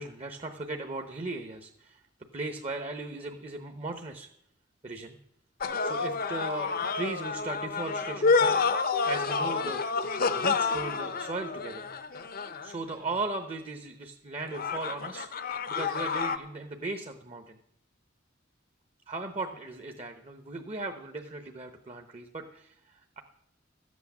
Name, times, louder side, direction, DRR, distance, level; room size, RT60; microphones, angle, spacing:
voice 1, 0.0-2.0 2.3-4.3 4.8-5.1 5.8-8.6 9.0-11.9 12.6-15.3 15.7-17.6 19.1-23.2, right 3 dB, 30° right, 6 dB, 0.9 m, -37 dB
sound 1, 5.6-12.9 14.5-16.4, left 4 dB, 45° left, 0.7 m, -29 dB
13.5 x 8.4 x 7.2 m, 0.75 s
head